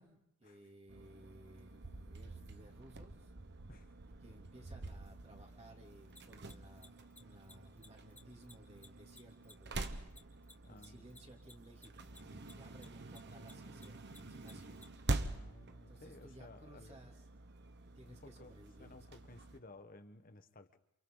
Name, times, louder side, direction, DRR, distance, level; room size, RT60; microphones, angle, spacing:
voice 1, 0.0-3.3 4.2-10.1 10.7-12.1 12.5-14.8 15.9-17.1 17.9-19.4, right 1 dB, 30° right, 0 dB, 3.2 m, -59 dB
sound 1, 0.9-19.6, right 2 dB, 55° right, 1.2 m, -46 dB
Mechanisms, 6.1-12.8 13.1-14.8, left 2 dB, 5° left, 2.6 m, -58 dB
voice 2, 10.6-11.1 15.2-17.0 18.0-20.8, left 2 dB, 40° left, 9 dB, 1.4 m, -57 dB
29.5 x 28.0 x 4.1 m, 0.83 s
head